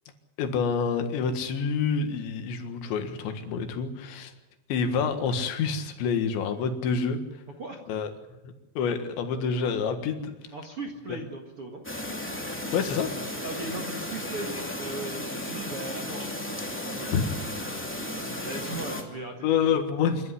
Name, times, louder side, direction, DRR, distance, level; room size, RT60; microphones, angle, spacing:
voice 1, 0.4-4.3 4.7-7.2 7.9-8.1 8.8-10.4 12.7-13.1 17.1-17.2 19.4-20.3, left 6 dB, 70° left, 7 dB, 3.9 m, -27 dB
voice 2, 10.5-11.8 13.4-17.3 18.4-19.4, right 2 dB, 55° right, 3 dB, 1.5 m, -38 dB
Chirp tweet, 11.8-19.0, left 1 dB, 5° left, 0.9 m, -34 dB
27.5 x 12.5 x 9.7 m, 1.1 s
omnidirectional pair, 5.5 m